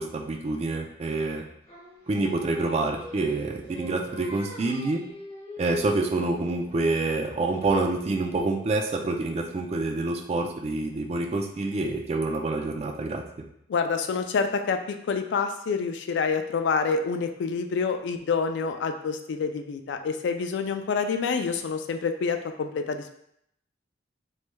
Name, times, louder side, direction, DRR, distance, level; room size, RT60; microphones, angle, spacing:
voice 1, 0.0-1.4 2.1-5.0 5.6-13.2, right 2 dB, 35° right, 3 dB, 0.3 m, -27 dB
Singing, 1.7-6.9, left 1 dB, 30° left, 0.8 m, -43 dB
voice 2, 13.7-23.2, left 5 dB, 75° left, 6 dB, 0.3 m, -27 dB
3.2 x 3.1 x 2.2 m, 0.74 s
head